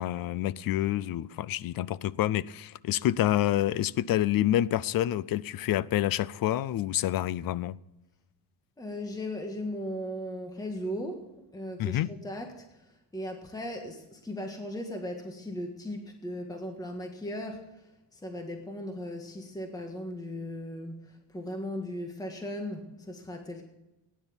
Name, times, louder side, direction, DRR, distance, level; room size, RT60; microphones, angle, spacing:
voice 1, 0.0-7.8 11.8-12.1, left 13 dB, 45° left, 0.5 m, -28 dB
voice 2, 8.8-11.2 11.5-23.6, left 1 dB, 5° left, 1.6 m, -37 dB
16.5 x 10.0 x 7.1 m
cardioid pair, 140°, 49 cm